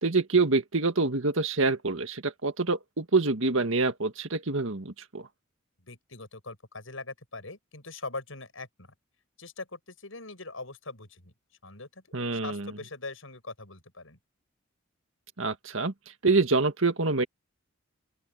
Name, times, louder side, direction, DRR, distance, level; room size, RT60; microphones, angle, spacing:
voice 1, 0.0-5.3 12.1-12.7 15.4-15.9 16.2-17.2, right 3 dB, 70° right, 1.8 m, -26 dB
voice 2, 5.8-8.9 9.4-11.3 11.6-12.0 12.3-14.2, left 3 dB, 70° left, 7.2 m, -42 dB
open air
head